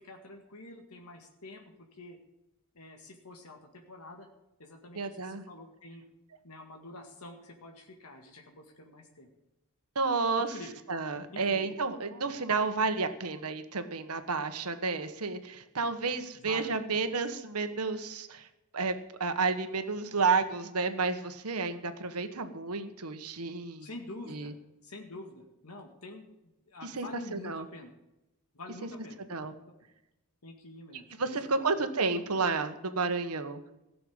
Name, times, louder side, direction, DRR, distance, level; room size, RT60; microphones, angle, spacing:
voice 1, 0.0-2.2 2.7-4.3 4.6-6.0 6.4-9.3 10.4-10.7 11.3-11.7 12.3-12.4 16.3-16.7 23.8-24.5 24.8-26.3 26.7-27.9 28.5-29.7 30.4-31.8, left 2 dB, 80° left, 3 dB, 2.0 m, -47 dB
voice 2, 4.9-5.4 9.9-10.5 10.9-18.5 18.7-23.9 24.3-24.5 26.8-27.7 29.3-29.5 31.2-33.6, right 4 dB, 80° right, 9 dB, 1.4 m, -31 dB
16.5 x 6.9 x 8.8 m, 0.95 s
head